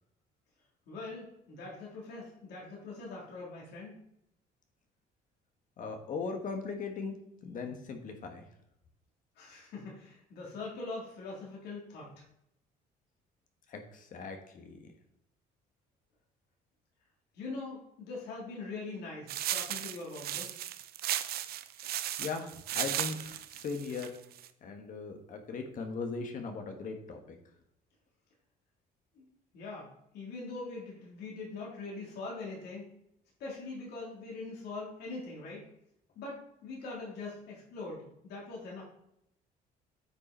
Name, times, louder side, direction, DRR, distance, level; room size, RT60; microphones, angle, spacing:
voice 1, 0.9-4.0 9.3-12.2 17.3-20.6 29.1-29.2 29.5-29.9 30.1-32.8 33.4-35.6 36.1-38.8, left 3 dB, 75° left, -4 dB, 3.3 m, -42 dB
voice 2, 5.8-7.1 7.4-8.4 13.7-14.8 22.2-24.1 24.6-27.4, left 4 dB, 50° left, 5 dB, 1.3 m, -39 dB
sound 1, 19.3-24.5, right 12 dB, 65° right, 0.6 m, -36 dB
9.4 x 5.6 x 4.3 m, 0.77 s
cardioid pair, 110°, 17 cm